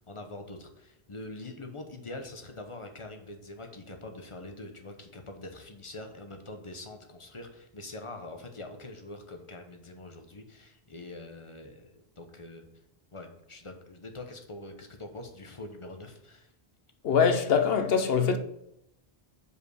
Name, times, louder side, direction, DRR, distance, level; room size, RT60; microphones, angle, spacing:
voice 1, 0.1-12.7 13.1-16.5, left 2 dB, 30° left, 0.9 m, -44 dB
voice 2, 17.0-18.4, left 6 dB, 70° left, 0.9 m, -23 dB
5.1 x 5.0 x 6.4 m
omnidirectional pair, 1.1 m